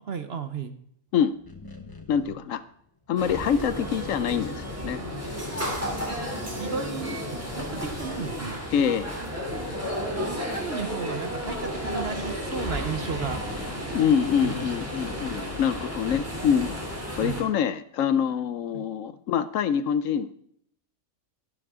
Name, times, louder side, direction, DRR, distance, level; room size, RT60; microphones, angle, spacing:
voice 1, 0.1-0.8 6.1-6.2 6.6-8.6 10.3-13.4 14.4-14.7 17.2-17.5 18.7-18.9, right 6 dB, 50° right, 9 dB, 1.0 m, -34 dB
sound 1, 1.3-5.0 5.3-7.0 7.3-12.9 13.4-14.6, left 2 dB, 15° left, 1.0 m, -46 dB
voice 2, 2.1-2.6 3.1-5.0 8.7-9.1 13.9-16.8 17.2-20.3, left 8 dB, 70° left, 14 dB, 0.9 m, -25 dB
sound 2, 3.2-17.4, equal, 10° right, 3.0 m, -33 dB
12.0 x 11.5 x 3.6 m, 0.66 s
omnidirectional pair, 1.5 m